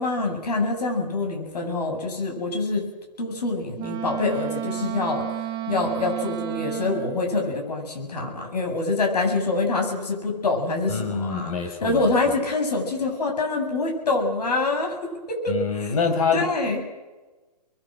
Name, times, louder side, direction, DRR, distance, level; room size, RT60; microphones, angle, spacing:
voice 1, 0.0-2.8 3.2-5.3 5.7-11.5 11.8-15.9 16.3-16.8, left 3 dB, 70° left, 3 dB, 7.9 m, -25 dB
Wind instrument woodwind instrument, 3.8-7.2, right 12 dB, 20° right, 1.7 m, -31 dB
voice 2, 10.9-12.4 15.5-16.5, left 5 dB, 55° left, 7 dB, 5.5 m, -26 dB
29.5 x 22.5 x 6.6 m, 1.2 s
hypercardioid pair, 140°, 21 cm